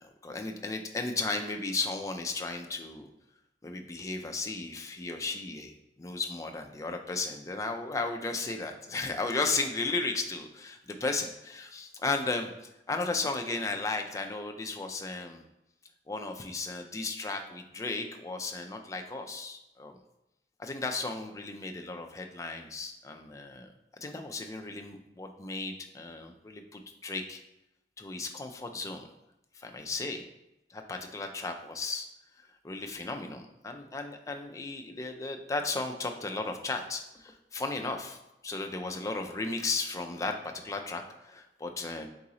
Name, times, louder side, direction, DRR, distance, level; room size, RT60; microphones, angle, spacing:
voice 1, 0.0-3.1 3.6-15.4 16.1-19.9 20.6-23.7 24.0-27.4 28.0-29.1 29.5-30.2 30.7-32.1 32.6-42.1, left 3 dB, 20° left, 4 dB, 0.3 m, -35 dB
3.9 x 2.9 x 3.7 m, 0.90 s
head